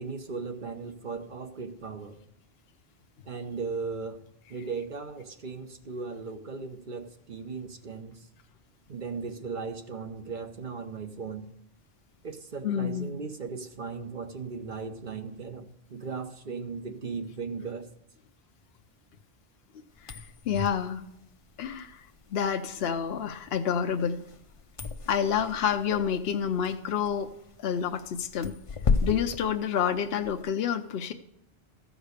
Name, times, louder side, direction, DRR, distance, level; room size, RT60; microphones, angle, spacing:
voice 1, 0.0-2.2 3.2-4.2 4.5-8.3 8.9-11.5 12.2-17.9, right 4 dB, 50° right, 7 dB, 1.1 m, -37 dB
voice 2, 12.6-13.1 20.0-20.2 20.5-21.0 21.6-24.2 25.1-27.3 27.6-28.6 29.0-31.1, left 8 dB, 75° left, 6 dB, 0.9 m, -28 dB
sound 1, 19.9-30.4, left 4 dB, 40° left, 0.6 m, -35 dB
14.5 x 5.1 x 6.4 m, 0.81 s
omnidirectional pair, 1.1 m